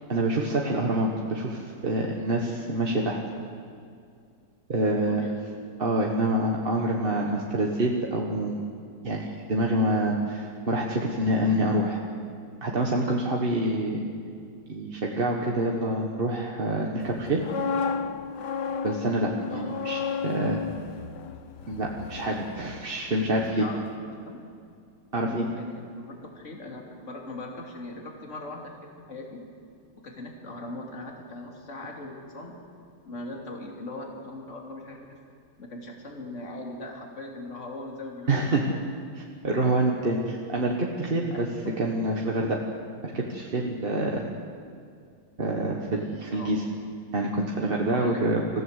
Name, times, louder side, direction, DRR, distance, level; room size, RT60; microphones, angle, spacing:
voice 1, 0.1-3.2 4.7-5.3 5.8-8.6 9.0-12.0 12.6-14.0 14.7-17.4 18.8-20.0 20.2-20.6 21.7-23.7 25.1-25.5 38.3-38.6 39.1-41.5 41.8-42.6 43.0-44.2 45.4-46.6 47.1-48.4, right 1 dB, 30° right, -1 dB, 1.5 m, -26 dB
voice 2, 4.9-5.4 16.7-16.9 19.5-19.7 23.1-23.3 23.6-23.8 24.2-24.4 25.1-29.4 30.0-32.6 33.0-35.2 35.6-38.8 41.3-41.7 46.3-46.7 47.8-48.3, left 2 dB, 35° left, 1 dB, 3.2 m, -40 dB
sound 1, 17.2-23.1 23.4-23.6, left 6 dB, 60° left, 1.4 m, -33 dB
25.5 x 15.5 x 8.2 m, 2.4 s
omnidirectional pair, 2.4 m